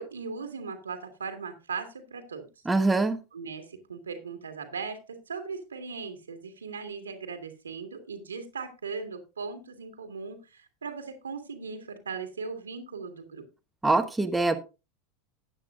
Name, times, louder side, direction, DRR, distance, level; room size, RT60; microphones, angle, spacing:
voice 1, 0.0-2.5 3.3-13.5, right 5 dB, 85° right, 6 dB, 2.0 m, -38 dB
voice 2, 2.7-3.2 13.8-14.6, right 3 dB, 10° right, 5 dB, 1.2 m, -23 dB
14.5 x 9.5 x 2.5 m, 0.28 s
hypercardioid pair, 90°, 0 cm